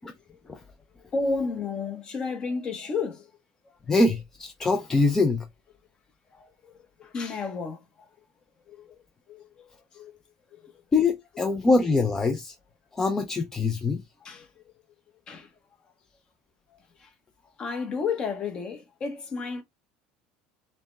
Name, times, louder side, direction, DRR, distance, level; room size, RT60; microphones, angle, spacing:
voice 1, 1.0-3.3 6.3-8.1 8.7-9.0 9.3-10.2 10.5-10.6 14.2-14.7 15.3-15.5 17.0-17.1 17.6-19.6, left 4 dB, 30° left, 1.0 m, -32 dB
voice 2, 3.9-5.5 10.9-12.5 12.9-14.0, left 3 dB, 15° left, 0.4 m, -23 dB
5.6 x 2.2 x 3.2 m
supercardioid pair, 135°, 3 cm